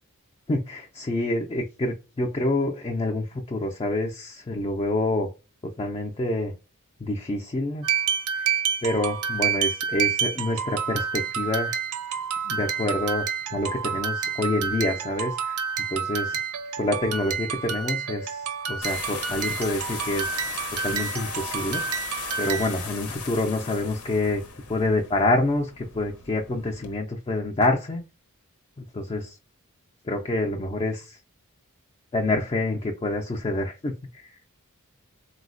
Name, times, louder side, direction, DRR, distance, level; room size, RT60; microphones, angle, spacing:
voice 1, 0.5-5.3 5.8-6.5 7.0-7.8 8.3-11.8 12.4-15.6 15.9-16.4 16.8-20.6 20.8-21.8 22.4-24.4 24.7-28.0 28.9-29.4 30.0-31.2 32.1-34.3, left 2 dB, 25° left, 2 dB, 0.4 m, -27 dB
sound 1, 7.8-22.9, right 7 dB, 80° right, 0.5 m, -29 dB
sound 2, 18.8-26.9, left 5 dB, 75° left, 0.7 m, -37 dB
3.8 x 2.0 x 2.5 m, 0.29 s
head